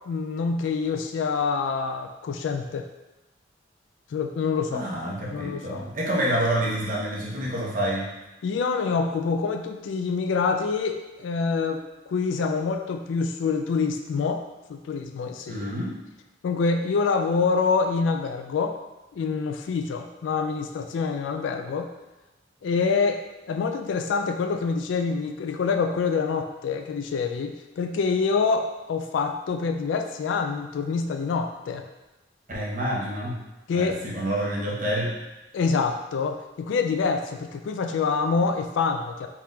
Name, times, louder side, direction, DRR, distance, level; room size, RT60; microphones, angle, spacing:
voice 1, 0.1-2.9 4.1-4.9 5.3-5.8 8.4-14.4 14.7-15.7 16.4-18.8 19.1-21.9 22.6-31.8 33.7-34.0 35.5-39.3, left 5 dB, 70° left, 6 dB, 0.3 m, -26 dB
voice 2, 4.7-8.1 15.5-16.0 32.5-33.4 33.7-35.1, right 1 dB, 45° right, -5 dB, 1.1 m, -28 dB
4.4 x 2.4 x 3.9 m, 1.0 s
head